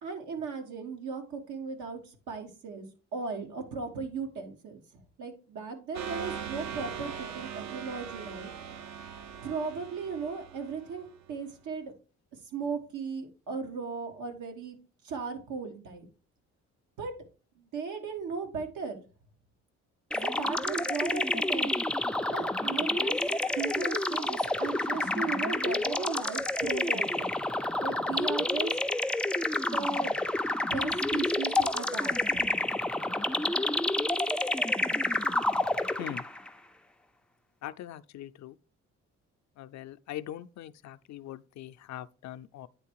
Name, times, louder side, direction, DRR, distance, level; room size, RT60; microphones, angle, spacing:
voice 1, 0.0-2.9 3.1-8.5 9.4-11.9 12.5-14.8 15.0-16.1 17.0-17.1 17.5-19.0 20.2-21.7 22.3-23.2 23.5-27.3 27.8-28.8 29.7-30.1 30.5-32.4, right 5 dB, 80° right, 1.5 m, -37 dB
sound 1, 5.9-11.4, right 7 dB, 65° right, 0.8 m, -41 dB
sound 2, 20.1-36.5, left 1 dB, 5° left, 0.3 m, -29 dB
voice 2, 37.6-38.6 39.6-42.7, left 12 dB, 65° left, 0.5 m, -42 dB
9.3 x 3.4 x 4.6 m
cardioid pair, 90°, 30 cm